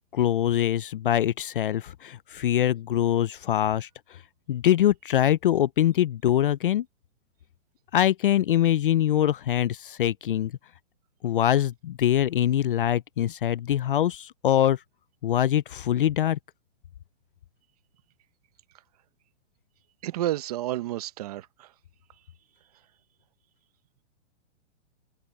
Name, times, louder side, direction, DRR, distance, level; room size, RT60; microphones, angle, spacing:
voice 1, 0.1-3.9 4.5-6.8 7.9-10.5 11.2-14.8 15.2-16.4, left 11 dB, 45° left, 0.5 m, -23 dB
voice 2, 20.0-21.7, right 14 dB, 30° right, 0.9 m, -30 dB
hypercardioid pair, 165°, 36 cm